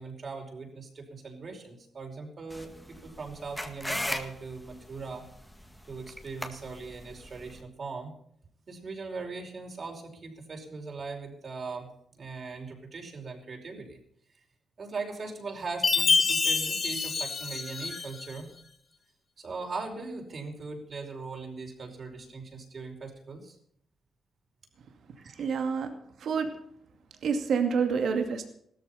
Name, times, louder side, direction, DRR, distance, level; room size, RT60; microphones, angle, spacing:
voice 1, 0.0-2.7 3.0-5.3 5.9-8.1 8.7-11.9 12.1-14.0 14.8-18.5 19.4-23.6 25.2-25.5, right 4 dB, 45° right, 2 dB, 5.1 m, -40 dB
sound 1, 2.5-7.6, left 1 dB, 5° left, 1.9 m, -38 dB
Chime, 15.8-18.3, left 4 dB, 40° left, 1.7 m, -26 dB
voice 2, 25.4-25.9 26.2-26.5 27.2-28.5, right 6 dB, 70° right, 5 dB, 2.4 m, -27 dB
17.0 x 13.5 x 5.7 m, 0.68 s
cardioid pair, 105°, 0 cm